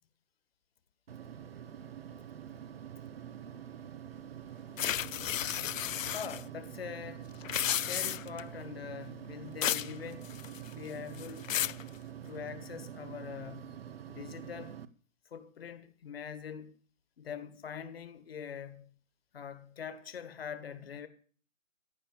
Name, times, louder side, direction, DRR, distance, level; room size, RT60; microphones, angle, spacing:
sound 1, 1.1-14.9, right 10 dB, 45° right, 0.9 m, -46 dB
sound 2, 4.8-6.4 7.4-8.4 9.6-9.9 10.3-10.7 11.2-11.8, left 10 dB, 75° left, 0.5 m, -33 dB
voice 1, 6.1-7.3 7.9-10.4 10.7-11.5 12.2-13.8 14.1-14.8 15.3-16.7 17.2-18.9 19.3-21.1, left 7 dB, 45° left, 1.7 m, -43 dB
15.0 x 8.7 x 7.0 m
hypercardioid pair, 155°, 40 cm